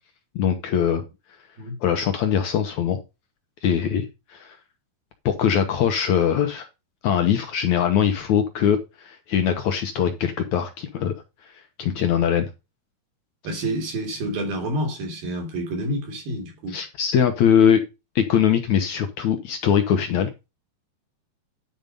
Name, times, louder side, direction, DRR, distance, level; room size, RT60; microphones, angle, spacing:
voice 1, 0.4-1.0 1.8-3.0 3.6-4.6 5.3-6.7 7.0-11.1 11.8-12.5 16.7-17.8 18.2-20.3, left 8 dB, 70° left, 1.8 m, -21 dB
voice 2, 13.4-16.8, right 1 dB, 65° right, 5.0 m, -28 dB
11.0 x 5.1 x 5.3 m
omnidirectional pair, 4.5 m